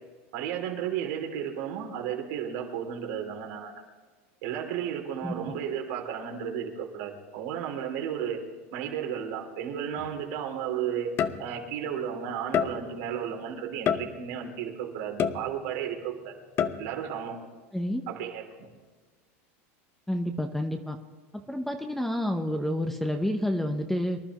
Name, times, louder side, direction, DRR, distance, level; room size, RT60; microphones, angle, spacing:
voice 1, 0.3-3.7 4.4-8.4 8.7-11.1 11.4-16.3 16.8-17.4 18.1-18.7, right 9 dB, 70° right, 2 dB, 3.0 m, -33 dB
sound 1, 10.0-10.2 11.2-11.8 12.5-13.1 13.9-14.5 15.2-15.9 16.6-17.1, left 8 dB, 35° left, 0.7 m, -29 dB
voice 2, 17.7-18.1 20.1-21.0 21.5-24.2, left 1 dB, 5° left, 5 dB, 0.9 m, -29 dB
24.5 x 12.0 x 3.1 m, 1.4 s
supercardioid pair, 130°, 7 cm